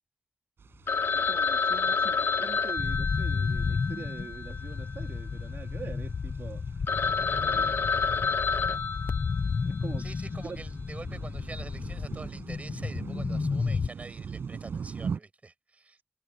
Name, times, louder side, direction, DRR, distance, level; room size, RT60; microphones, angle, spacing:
sound 1, 0.6-15.2, right 6 dB, 90° right, 7.4 m, -43 dB
Telephone, 0.9-5.2 5.5-5.6 6.1-6.2 6.6-6.7 6.9-9.8, left 5 dB, 70° left, 0.8 m, -29 dB
voice 1, 1.1-6.6 7.4-7.9 9.6-10.1 10.4-10.6, right 5 dB, 70° right, 3.9 m, -44 dB
sound 2, 2.8-13.9, left 5 dB, 55° left, 1.2 m, -32 dB
voice 2, 10.0-16.0, right 3 dB, 35° right, 6.9 m, -46 dB
wide cardioid pair, 125°, 4 cm